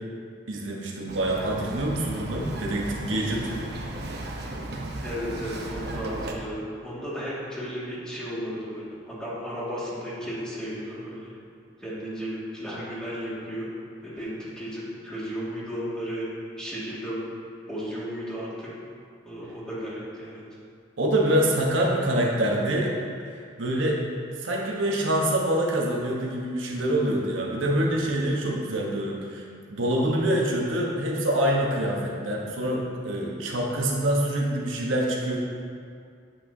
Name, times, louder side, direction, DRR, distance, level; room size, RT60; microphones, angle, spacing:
voice 1, 0.5-3.5 21.0-22.9 23.3-24.0 24.4-35.4, right 1 dB, 85° right, -2 dB, 1.2 m, -26 dB
Bird vocalization bird call bird song, 1.1-6.3, right 2 dB, 60° right, 0.9 m, -35 dB
voice 2, 5.0-11.3 11.8-13.7 14.0-16.3 16.6-17.2 17.7-18.7 19.3-20.4, equal, 5° left, -9 dB, 2.1 m, -34 dB
8.8 x 8.6 x 2.8 m, 2.2 s
head